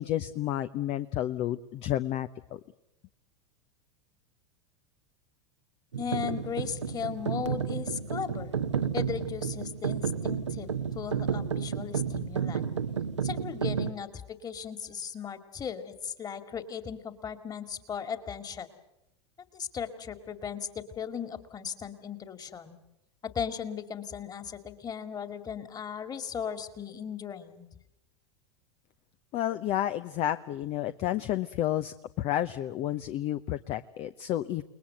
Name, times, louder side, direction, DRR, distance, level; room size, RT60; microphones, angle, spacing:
voice 1, 0.0-2.6 29.3-34.6, left 12 dB, 40° left, 11 dB, 0.9 m, -31 dB
sound 1, 5.9-13.9, right 7 dB, 85° right, 1.3 m, -31 dB
voice 2, 6.0-8.6 8.9-12.7 13.2-18.7 19.5-22.8 23.2-27.7, left 7 dB, 25° left, 10 dB, 2.4 m, -37 dB
29.5 x 20.5 x 7.9 m, 0.86 s
figure-of-eight pair, 85°, 15 cm